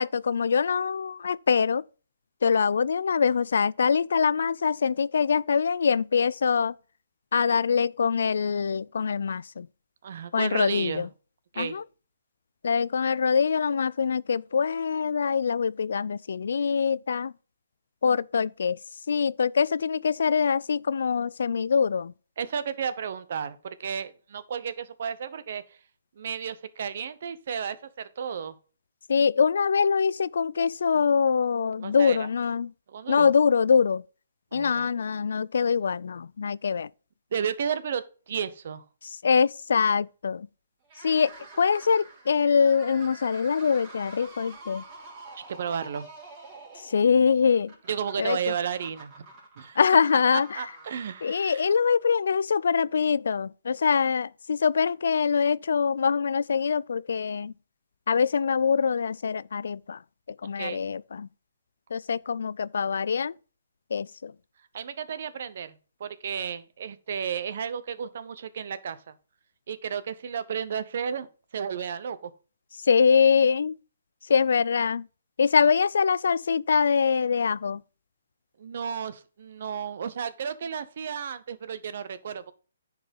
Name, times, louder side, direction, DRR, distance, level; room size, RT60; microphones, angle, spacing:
voice 1, 0.0-1.8 2.4-6.7 7.3-9.7 10.3-11.1 11.6-11.8 12.6-17.3 18.0-18.8 19.1-22.1 29.1-32.7 33.1-34.0 34.5-36.9 39.0-40.5 41.0-44.8 46.8-47.7 48.2-48.4 49.8-50.6 51.2-57.5 58.1-60.0 60.4-61.3 61.9-63.3 63.9-64.3 72.8-73.7 74.3-75.1 75.4-77.8, left 6 dB, 70° left, 0.4 m, -24 dB
voice 2, 10.0-11.1 11.5-11.8 22.4-25.8 26.2-28.6 31.8-32.3 32.9-33.3 34.5-34.9 37.3-38.8 45.3-46.1 47.9-49.1 49.6-49.8 50.3-51.7 60.6-60.8 64.7-65.7 66.0-69.1 69.7-71.3 71.5-72.3 78.6-82.5, right 7 dB, 55° right, 1.0 m, -33 dB
sound 1, 40.8-52.1, right 3 dB, 25° right, 3.5 m, -47 dB
9.9 x 4.8 x 5.3 m
hypercardioid pair, 155°, 0 cm